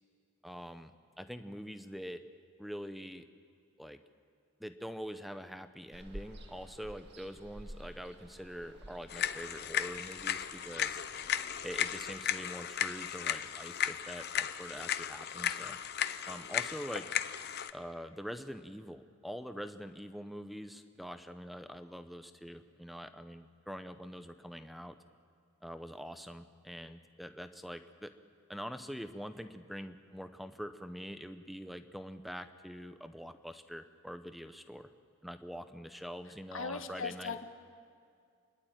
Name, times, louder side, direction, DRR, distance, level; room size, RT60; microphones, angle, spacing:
voice 1, 0.4-0.9 1.2-2.2 2.6-3.2 3.8-4.0 4.6-11.0 11.6-15.8 16.3-17.1 17.7-25.0 25.6-28.1 28.5-34.9 35.2-37.4, equal, ahead, 9 dB, 0.7 m, -44 dB
Ocean, 5.9-12.2, right 1 dB, 50° right, 2.0 m, -52 dB
sound 1, 9.1-17.7, left 10 dB, 50° left, 0.6 m, -35 dB
voice 2, 36.5-37.4, left 5 dB, 65° left, 7 dB, 1.4 m, -38 dB
28.5 x 11.5 x 9.0 m, 2.3 s
head